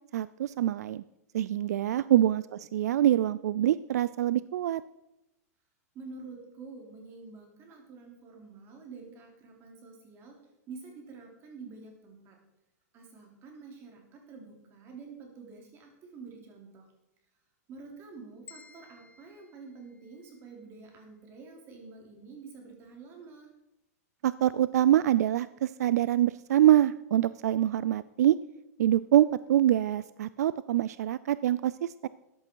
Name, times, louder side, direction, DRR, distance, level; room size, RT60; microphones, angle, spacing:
voice 1, 0.1-1.0 1.3-2.4 2.7-4.8 24.2-28.4 28.8-32.1, right 12 dB, 75° right, 17 dB, 0.4 m, -25 dB
voice 2, 5.9-10.4 10.7-12.4 12.9-16.9 17.7-23.5, right 4 dB, 30° right, 2 dB, 3.3 m, -48 dB
sound 1, 18.5-20.7, left 5 dB, 15° left, 1.5 m, -56 dB
13.5 x 10.5 x 4.6 m, 0.90 s
supercardioid pair, 155°, 9 cm